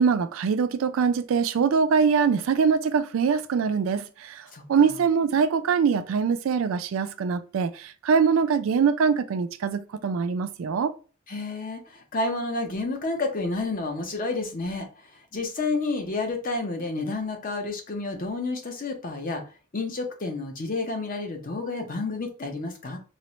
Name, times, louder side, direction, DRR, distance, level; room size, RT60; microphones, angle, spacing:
voice 1, 0.0-10.9, right 6 dB, 75° right, 0.3 m, -23 dB
voice 2, 11.3-14.9 15.3-19.4 19.7-23.0, left 3 dB, 40° left, 0.6 m, -30 dB
4.1 x 2.0 x 2.9 m
head